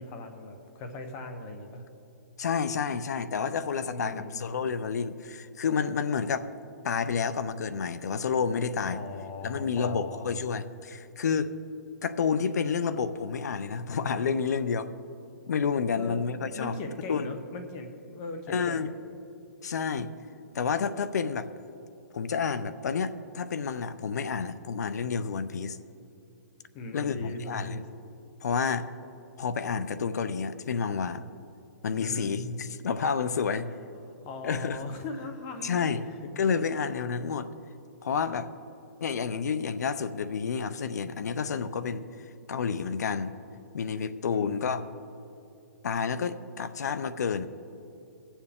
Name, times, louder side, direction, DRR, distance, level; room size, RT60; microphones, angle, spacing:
voice 1, 0.0-1.8 3.9-4.4 8.9-10.3 15.9-16.2 16.5-18.9 26.7-27.9 32.0-32.3 34.2-35.8 44.3-44.7, left 2 dB, 30° left, 6 dB, 1.0 m, -39 dB
voice 2, 2.4-6.5 6.8-9.0 9.4-11.5 12.0-14.9 15.5-16.7 17.1-17.3 18.5-18.9 19.6-20.1 20.5-21.5 22.1-25.8 26.9-27.8 28.4-28.9 29.4-31.2 31.8-33.7 34.4-34.9 35.6-36.0 36.4-37.5 38.0-38.5 39.0-42.0 42.5-43.4 43.7-44.9 45.8-47.5, left 6 dB, 75° left, 13 dB, 0.6 m, -29 dB
20.0 x 7.2 x 3.6 m, 2.7 s
hypercardioid pair, 160°, 9 cm